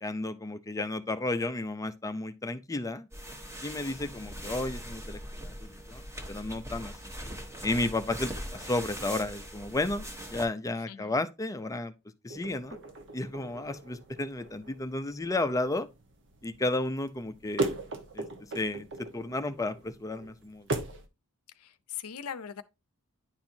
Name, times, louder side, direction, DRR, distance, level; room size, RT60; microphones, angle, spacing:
voice 1, 0.0-3.1 3.6-5.2 5.4-6.0 6.3-6.9 7.6-10.0 10.3-11.9 12.2-12.8 13.1-15.9 16.4-17.7 18.1-18.3 18.5-20.7, left 2 dB, 15° left, 0.5 m, -32 dB
sound 1, 3.1-10.5, equal, 15° right, 1.1 m, -41 dB
sound 2, 12.3-21.1, right 2 dB, 55° right, 1.1 m, -39 dB
voice 2, 21.6-22.6, left 8 dB, 80° left, 0.6 m, -40 dB
10.5 x 4.4 x 2.7 m
head